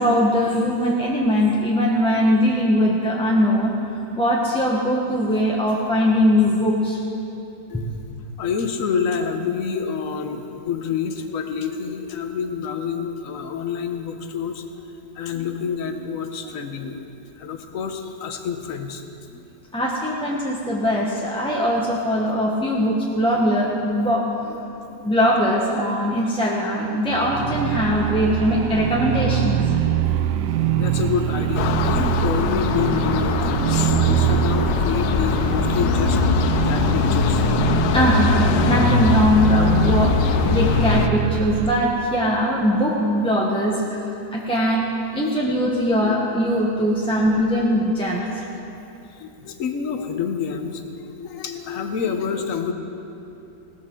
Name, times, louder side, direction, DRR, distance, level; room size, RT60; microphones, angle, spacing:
voice 1, 0.0-3.7 4.2-7.0 19.7-24.3 25.0-29.6 37.9-44.9 45.1-48.4, equal, 5° left, -4 dB, 0.8 m, -21 dB
voice 2, 8.4-14.6 15.1-19.0 19.3-19.4 23.4-23.5 24.5-24.6 24.9-25.1 30.7-36.2 36.6-37.5 42.2-42.3 46.0-46.2 49.1-52.7, left 6 dB, 55° left, 6 dB, 1.2 m, -28 dB
sound 1, 27.1-41.9, right 11 dB, 80° right, 1.1 m, -23 dB
sound 2, 31.5-41.1, left 10 dB, 80° left, 1.2 m, -22 dB
17.5 x 14.0 x 3.8 m, 2.8 s
omnidirectional pair, 1.9 m